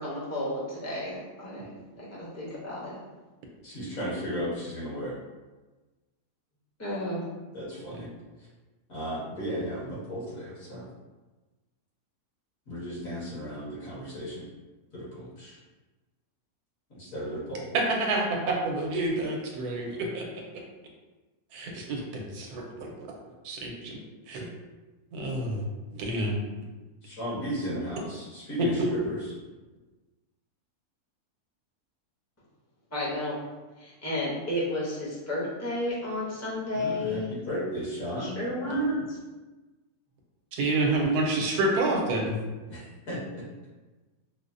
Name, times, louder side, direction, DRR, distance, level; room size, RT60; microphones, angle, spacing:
voice 1, 0.0-3.0 6.8-7.2 32.9-33.4 33.8-37.3 38.2-39.0, left 1 dB, 15° left, -7 dB, 0.6 m, -32 dB
voice 2, 3.6-5.1 7.5-8.1 8.9-10.8 12.7-14.5 14.9-15.6 16.9-17.7 27.0-29.2 36.7-38.4 42.7-43.4, equal, 60° left, -8 dB, 1.7 m, -35 dB
voice 3, 17.7-20.2 21.5-22.9 23.4-24.0 24.3-24.5 25.1-25.6 25.9-26.4 28.6-28.9 38.6-39.0 40.6-42.4, right 2 dB, 80° right, 0 dB, 1.2 m, -28 dB
5.1 x 2.1 x 2.6 m, 1.2 s
omnidirectional pair, 1.6 m